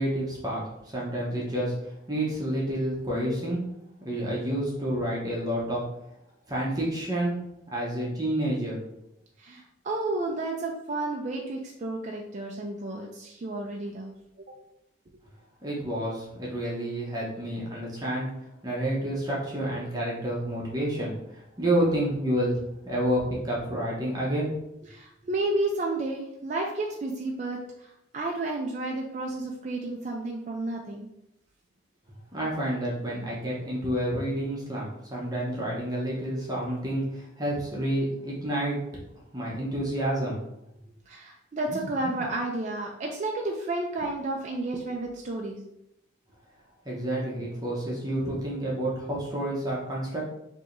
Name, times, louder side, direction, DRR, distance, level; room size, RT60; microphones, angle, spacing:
voice 1, 0.0-3.6 4.0-5.8 6.5-7.4 7.7-8.8 15.6-18.3 18.6-24.5 32.3-38.8 39.3-40.4 46.8-50.2, right 1 dB, 20° right, -5 dB, 0.7 m, -29 dB
voice 2, 9.4-14.1 14.4-14.5 24.9-31.1 36.7-36.8 41.1-45.6, right 2 dB, 40° right, 0 dB, 0.3 m, -31 dB
4.7 x 2.8 x 2.5 m, 0.83 s
head